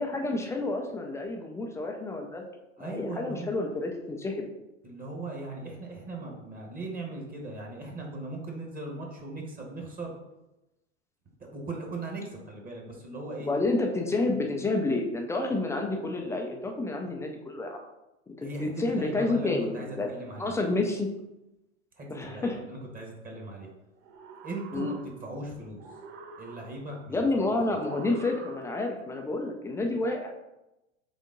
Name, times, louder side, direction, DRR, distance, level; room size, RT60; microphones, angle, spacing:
voice 1, 0.0-2.5 2.8-4.5 13.4-17.8 18.3-20.1 20.4-21.1 22.1-22.6 24.7-24.9 27.1-30.3, left 2 dB, 10° left, 2 dB, 0.3 m, -29 dB
voice 2, 2.8-3.7 4.8-10.1 11.5-13.5 18.4-20.6 22.0-23.7 24.4-25.0 25.2-25.8 26.4-27.2, right 2 dB, 25° right, 0 dB, 1.1 m, -38 dB
sound 1, 24.0-25.4 25.8-27.0 27.7-29.0, right 4 dB, 60° right, 0.7 m, -45 dB
4.0 x 3.5 x 3.7 m, 0.95 s
figure-of-eight pair, 85°, 37 cm